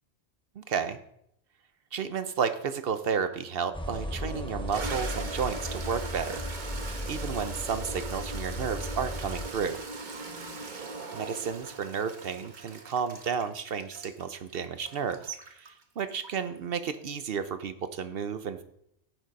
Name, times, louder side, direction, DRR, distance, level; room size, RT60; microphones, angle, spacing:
voice 1, 0.6-1.0 1.9-6.4 7.1-9.8 11.1-18.6, right 6 dB, 60° right, 10 dB, 0.9 m, -32 dB
Toilet flush, 3.4-3.5 4.1-16.6, right 3 dB, 45° right, 1.2 m, -40 dB
sound 1, 3.7-9.5, left 1 dB, 5° left, 0.9 m, -36 dB
9.1 x 7.5 x 5.2 m, 0.74 s
omnidirectional pair, 1.2 m